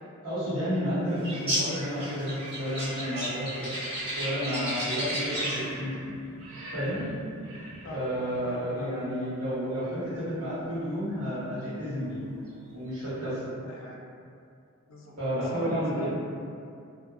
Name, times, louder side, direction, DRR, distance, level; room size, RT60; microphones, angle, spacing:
voice 1, 0.2-3.7 4.1-5.9 6.7-7.0 7.9-12.2 12.7-13.6 15.2-16.1, equal, 90° right, -13 dB, 1.0 m, -31 dB
sound 1, 1.2-5.7, equal, 30° right, 0.7 m, -33 dB
sound 2, 4.0-8.5 8.7-8.9 9.2-13.3, right 1 dB, 75° right, 0.5 m, -43 dB
voice 2, 8.4-8.9 13.6-14.0 14.9-15.1 15.5-16.1, left 1 dB, 65° left, -1 dB, 0.3 m, -39 dB
2.8 x 2.0 x 2.3 m, 2.4 s
head